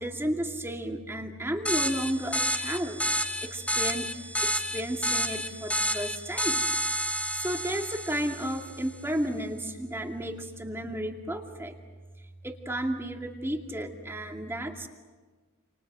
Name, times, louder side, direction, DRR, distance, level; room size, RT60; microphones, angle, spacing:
voice 1, 0.0-3.0 3.4-4.1 4.4-6.7 7.4-11.7 12.4-14.9, right 1 dB, 10° right, 3 dB, 2.4 m, -33 dB
sound 1, 1.7-8.8, equal, 5° left, 1.3 m, -30 dB
29.0 x 28.5 x 6.2 m, 1.4 s
head